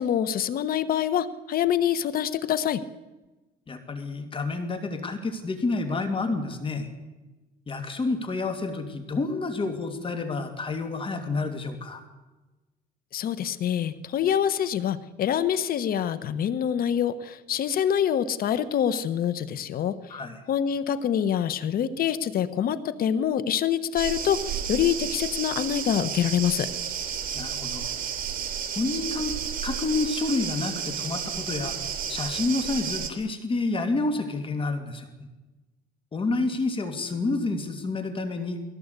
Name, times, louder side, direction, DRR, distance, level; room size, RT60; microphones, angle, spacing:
voice 1, 0.0-2.8 13.1-20.2 20.5-26.7, left 9 dB, 60° left, 14 dB, 1.2 m, -26 dB
voice 2, 3.7-6.9 7.7-12.0 20.1-20.4 27.3-27.9 28.8-29.3 29.6-31.8 32.1-35.1 36.1-38.6, left 3 dB, 30° left, 7 dB, 2.6 m, -29 dB
sound 1, 23.9-33.1, right 8 dB, 55° right, 2.9 m, -32 dB
20.5 x 17.0 x 8.3 m, 1.1 s
cardioid pair, 110°, 17 cm